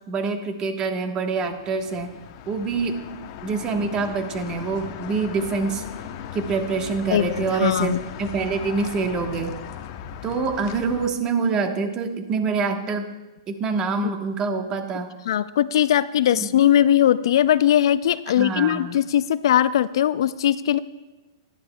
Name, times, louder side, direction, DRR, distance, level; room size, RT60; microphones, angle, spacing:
voice 1, 0.1-2.1 2.5-3.0 3.4-5.8 6.3-9.5 10.2-13.1 13.5-15.1 16.3-16.5 18.4-19.0, right 4 dB, 25° right, 6 dB, 1.1 m, -25 dB
sound 1, 1.3-11.1, left 9 dB, 45° left, 0.7 m, -38 dB
voice 2, 7.1-8.0 15.3-20.8, left 11 dB, 65° left, 17 dB, 0.3 m, -20 dB
15.5 x 11.0 x 2.2 m, 1.1 s
hypercardioid pair, 130°, 3 cm